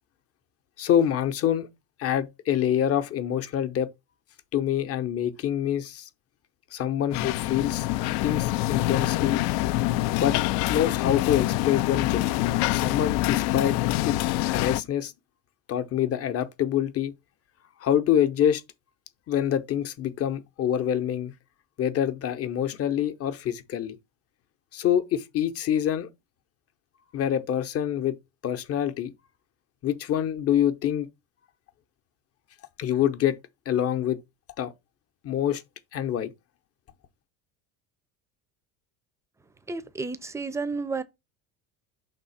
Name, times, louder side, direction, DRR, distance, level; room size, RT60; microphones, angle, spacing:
voice 1, 0.8-1.7 2.0-3.9 4.5-6.1 6.7-7.9 8.2-9.4 10.2-10.4 10.7-13.8 14.1-15.1 15.7-17.1 17.8-18.6 19.3-21.3 21.8-24.0 24.7-26.1 27.1-28.2 28.4-29.1 29.8-31.1 32.8-33.4 33.7-34.2 34.6-34.7 35.2-35.6 35.9-36.3, left 10 dB, 35° left, 0.8 m, -26 dB
sound 1, 7.1-14.8, left 17 dB, 70° left, 0.5 m, -25 dB
voice 2, 39.7-41.0, right 4 dB, 10° right, 0.5 m, -31 dB
5.7 x 3.7 x 5.5 m
cardioid pair, 140°, 39 cm